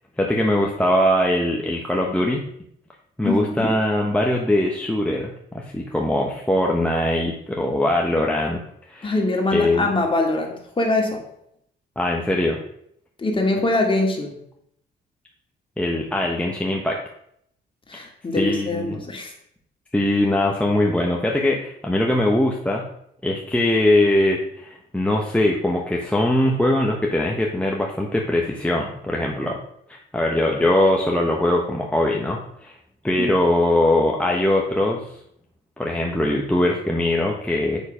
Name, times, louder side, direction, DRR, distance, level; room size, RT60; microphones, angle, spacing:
voice 1, 0.2-2.4 3.2-8.6 8.9-9.1 9.5-9.9 12.0-12.6 15.8-17.0 17.9-18.0 18.3-19.0 19.9-22.8 23.2-29.6 29.9-32.8 33.0-35.0 35.8-37.8, left 1 dB, 5° left, -1 dB, 1.1 m, -21 dB
voice 2, 3.2-3.7 9.0-11.2 13.2-14.4 17.9-19.3 33.2-33.3, left 2 dB, 25° left, 1 dB, 2.3 m, -23 dB
7.2 x 6.6 x 5.0 m, 0.71 s
cardioid pair, 90°, 20 cm